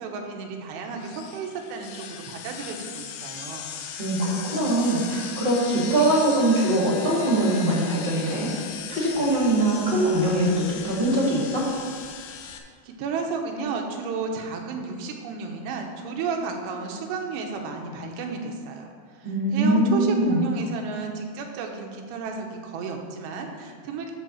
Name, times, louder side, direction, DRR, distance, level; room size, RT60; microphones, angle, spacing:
voice 1, 0.0-3.7 12.4-24.1, right 4 dB, 85° right, 2 dB, 3.1 m, -32 dB
sound 1, 1.0-12.6, left 8 dB, 80° left, 2.1 m, -38 dB
voice 2, 4.0-8.5 8.9-11.7 19.2-20.4, right 1 dB, 25° right, -5 dB, 1.1 m, -22 dB
10.5 x 4.0 x 7.1 m, 2.1 s
omnidirectional pair, 4.8 m